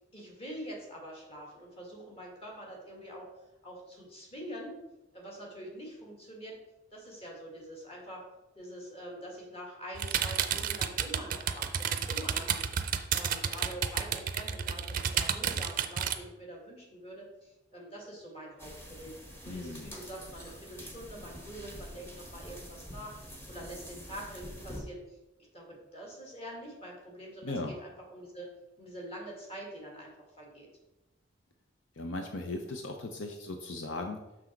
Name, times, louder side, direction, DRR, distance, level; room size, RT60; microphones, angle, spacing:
voice 1, 0.0-3.3 3.6-4.8 5.1-6.5 6.9-8.2 8.6-19.1 19.4-25.2 25.5-28.5 28.8-30.1 30.4-30.7, equal, 30° left, -2 dB, 2.1 m, -45 dB
sound 1, 9.9-16.1, right 7 dB, 45° right, 0.5 m, -31 dB
sound 2, 18.6-24.8, equal, 10° left, 1.2 m, -46 dB
voice 2, 19.5-19.9 27.4-27.7 32.0-34.2, left 2 dB, 75° left, 4 dB, 0.7 m, -37 dB
6.3 x 6.0 x 4.5 m, 1.0 s
head